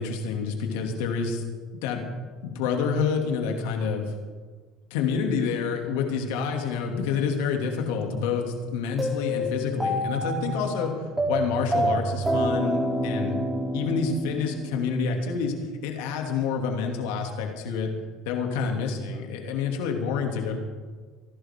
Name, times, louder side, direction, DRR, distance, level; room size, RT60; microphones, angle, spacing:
voice 1, 0.0-1.4 1.7-2.1 2.4-4.1 4.9-13.4 13.7-15.5 15.8-17.9 18.3-20.6, left 5 dB, 80° left, 2 dB, 2.7 m, -28 dB
sound 1, 9.0-15.2, right 1 dB, 15° right, 3.4 m, -28 dB
26.5 x 11.5 x 3.8 m, 1.5 s
supercardioid pair, 85°, 0 cm